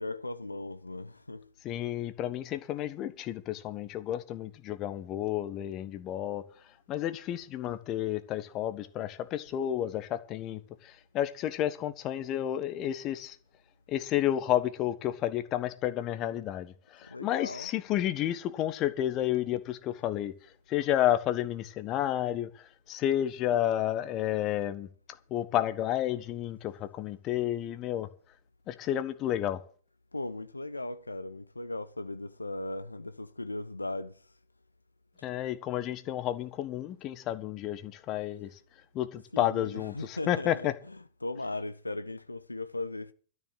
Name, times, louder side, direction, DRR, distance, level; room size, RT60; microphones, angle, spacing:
voice 1, 0.0-1.5 17.0-17.7 30.1-34.3 39.3-43.1, left 2 dB, 85° left, 0.6 m, -38 dB
voice 2, 1.6-6.4 6.9-13.4 13.9-20.3 20.7-24.9 25.3-28.1 28.7-29.6 35.2-38.5 38.9-40.7, left 12 dB, 30° left, 1.2 m, -31 dB
12.5 x 7.2 x 8.0 m
figure-of-eight pair, 105°, 0 cm